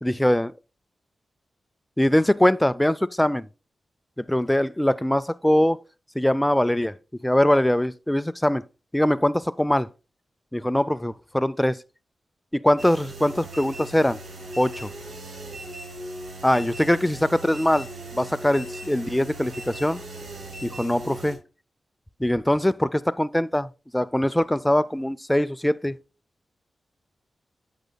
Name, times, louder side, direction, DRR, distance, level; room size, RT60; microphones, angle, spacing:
voice 1, 0.0-0.5 2.0-3.5 4.2-5.8 6.2-6.9 7.2-8.6 8.9-9.9 10.5-11.8 12.5-14.2 14.6-14.9 16.4-17.9 18.1-20.0 20.6-21.4 22.2-26.0, left 1 dB, 10° left, 0.3 m, -22 dB
sound 1, 12.8-21.4, right 1 dB, 70° right, 3.1 m, -38 dB
7.9 x 7.5 x 2.2 m
cardioid pair, 65°, 0 cm